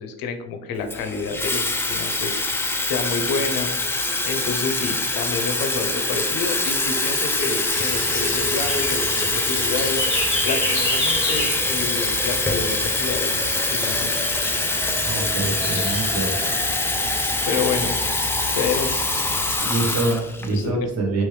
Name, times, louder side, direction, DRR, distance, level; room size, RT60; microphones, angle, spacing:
voice 1, 0.0-14.1 17.5-17.9 18.5-19.0 20.5-20.9, left 5 dB, 85° left, 6 dB, 0.6 m, -29 dB
Water tap faucet / Fill (with liquid), 0.9-20.6, left 2 dB, 5° left, 0.3 m, -24 dB
sound 1, 7.7-19.6, left 1 dB, 35° left, 1.4 m, -31 dB
voice 2, 15.0-16.3 19.6-21.2, right 2 dB, 50° right, 0 dB, 1.2 m, -25 dB
3.1 x 3.1 x 3.2 m, 0.93 s
cardioid pair, 95°, 34 cm